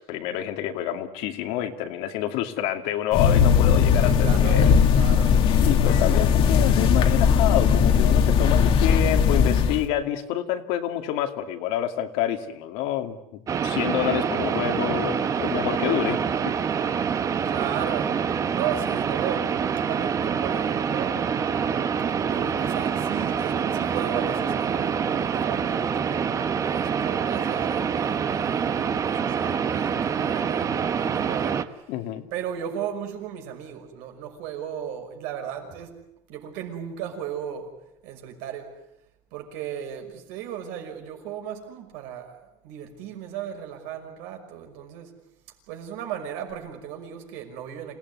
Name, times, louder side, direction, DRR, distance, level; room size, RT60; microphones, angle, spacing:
voice 1, 0.0-4.8 5.6-16.2 16.8-16.9 31.9-32.2, left 11 dB, 75° left, 2.5 m, -28 dB
sound 1, 3.1-9.8, left 7 dB, 50° left, 2.1 m, -19 dB
voice 2, 3.9-5.4 17.5-18.2 18.5-19.5 19.8-21.2 22.1-26.3 26.7-31.6 32.3-36.0 36.3-37.7 38.0-38.7 39.3-42.4 42.6-45.1 45.7-48.0, right 9 dB, 80° right, 5.9 m, -35 dB
sound 2, 13.5-31.6, right 7 dB, 25° right, 1.1 m, -26 dB
27.5 x 17.5 x 9.7 m
cardioid pair, 150°, 12 cm